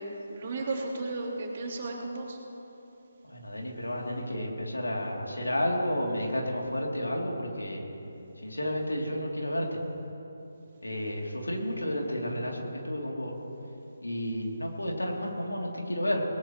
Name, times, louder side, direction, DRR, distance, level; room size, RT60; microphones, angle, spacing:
voice 1, 0.0-2.4, right 2 dB, 45° right, -5 dB, 3.5 m, -34 dB
voice 2, 3.2-7.9 8.4-9.8 10.8-13.3 14.0-16.2, equal, 85° left, -1 dB, 3.0 m, -31 dB
20.5 x 19.0 x 3.1 m, 2.9 s
figure-of-eight pair, 150°, 0 cm